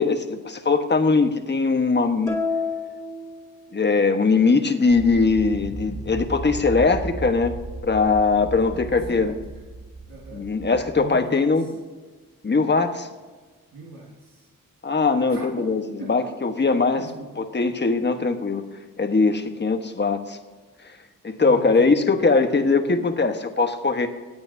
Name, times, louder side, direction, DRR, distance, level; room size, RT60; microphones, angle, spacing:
voice 1, 0.0-2.4 3.7-7.5 7.8-9.3 10.3-11.7 12.4-13.1 14.8-17.1 17.4-18.6 19.0-20.4 21.2-24.1, left 4 dB, 30° left, 7 dB, 1.3 m, -21 dB
sound 1, 2.3-4.1, left 4 dB, 5° left, 2.7 m, -30 dB
sound 2, 4.9-11.1, right 3 dB, 30° right, 4.0 m, -35 dB
voice 2, 8.5-9.4 10.1-10.5 11.0-11.5 13.7-14.5 15.3-15.7 16.0-16.4 17.0-17.4 21.4-22.1, right 3 dB, 85° right, -4 dB, 2.1 m, -39 dB
24.5 x 8.7 x 2.8 m, 1.3 s
cardioid pair, 80°, 34 cm